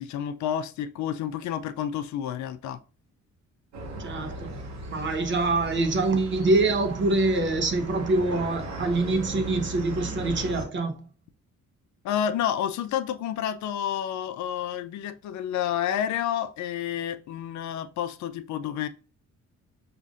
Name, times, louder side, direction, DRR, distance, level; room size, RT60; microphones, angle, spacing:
voice 1, 0.0-2.8 12.0-18.9, left 10 dB, 70° left, 0.4 m, -30 dB
sound 1, 3.7-10.6, right 1 dB, 65° right, 1.0 m, -37 dB
voice 2, 4.0-4.6 4.9-11.1, right 2 dB, 40° right, 0.7 m, -25 dB
5.0 x 2.5 x 2.4 m
cardioid pair, 90°, 30 cm